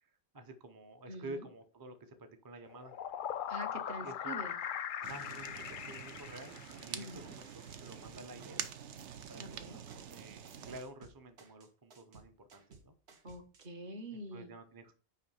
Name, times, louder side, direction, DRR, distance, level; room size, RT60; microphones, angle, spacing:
voice 1, 0.0-3.0 4.0-4.4 5.0-8.6 9.3-12.9 14.1-14.9, right 2 dB, 25° right, 7 dB, 0.5 m, -50 dB
voice 2, 1.1-1.5 3.5-4.6 6.9-7.3 9.4-9.8 13.2-14.5, right 1 dB, 50° right, 6 dB, 1.1 m, -45 dB
sound 1, 2.7-7.1, left 9 dB, 60° left, 0.6 m, -40 dB
Fire, 5.0-10.8, right 8 dB, 85° right, 1.0 m, -46 dB
sound 2, 7.7-8.7 9.0-13.7, right 4 dB, 70° right, 1.3 m, -59 dB
5.7 x 4.8 x 5.5 m, 0.39 s
omnidirectional pair, 1.2 m